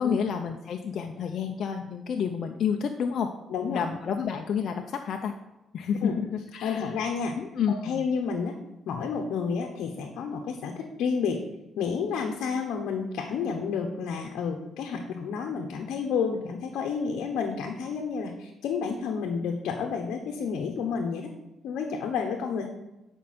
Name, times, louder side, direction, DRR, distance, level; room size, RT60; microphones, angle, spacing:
voice 1, 0.0-3.3 3.7-5.3 5.7-6.9 7.4-8.1, left 7 dB, 60° left, 4 dB, 0.6 m, -29 dB
voice 2, 3.5-3.8 6.0-6.1 6.6-7.4 7.8-8.6 8.9-11.4 11.8-21.3 21.6-22.7, left 6 dB, 80° left, 2 dB, 1.0 m, -30 dB
11.0 x 5.5 x 4.3 m, 0.96 s
cardioid pair, 90°, 0 cm